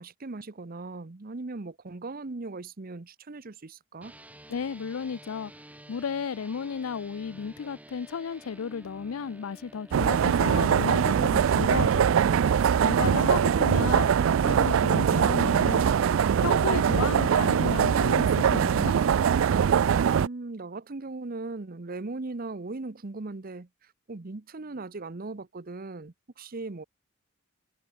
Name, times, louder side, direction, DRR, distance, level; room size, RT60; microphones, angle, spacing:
voice 1, 0.0-4.1 20.2-26.8, right 3 dB, 45° right, 0.8 m, -39 dB
sound 1, 4.0-13.5, right 1 dB, 5° right, 3.3 m, -51 dB
voice 2, 4.5-5.5 5.9-12.2 12.8-14.1 14.4-15.9 16.4-19.0, left 6 dB, 85° left, 0.5 m, -33 dB
sound 2, 9.9-20.3, right 7 dB, 70° right, 0.3 m, -22 dB
head